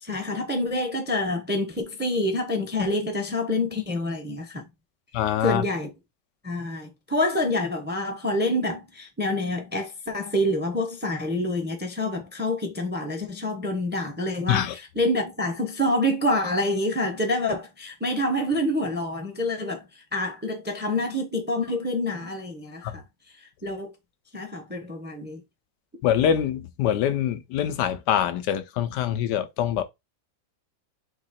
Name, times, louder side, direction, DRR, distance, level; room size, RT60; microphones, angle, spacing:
voice 1, 0.0-4.7 5.4-5.9 6.4-19.9 20.1-23.0 23.4-23.9 24.3-25.4, left 1 dB, 10° right, 0.5 m, -27 dB
voice 2, 5.1-5.6 14.5-14.7 22.8-23.0 26.0-29.8, left 10 dB, 90° left, 1.3 m, -24 dB
4.0 x 2.9 x 4.1 m
omnidirectional pair, 1.8 m